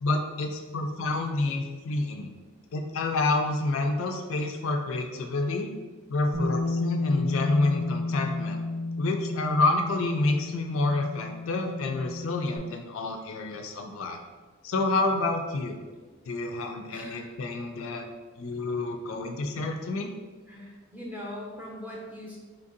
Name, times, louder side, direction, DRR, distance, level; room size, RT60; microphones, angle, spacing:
voice 1, 0.0-2.3 2.7-5.7 6.1-8.6 9.0-14.2 14.6-15.8 16.3-18.1 18.4-20.1, left 2 dB, 65° left, 4 dB, 0.4 m, -28 dB
Bass guitar, 6.3-12.6, left 2 dB, 55° right, 0.7 m, -32 dB
voice 2, 16.9-17.3 20.5-22.4, left 1 dB, 10° right, -4 dB, 0.6 m, -40 dB
4.3 x 2.6 x 2.5 m, 1.3 s
head